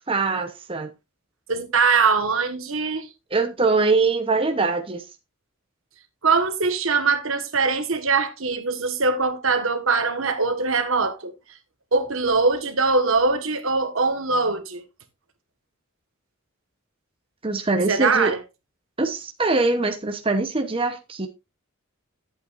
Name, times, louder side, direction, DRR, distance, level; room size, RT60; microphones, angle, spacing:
voice 1, 0.1-0.9 3.3-5.0 17.4-18.3 19.0-21.3, right 3 dB, 25° right, 0.9 m, -23 dB
voice 2, 1.5-3.1 6.2-11.3 11.9-14.8 17.9-18.4, right 4 dB, 70° right, 1.5 m, -22 dB
12.0 x 8.2 x 2.5 m
head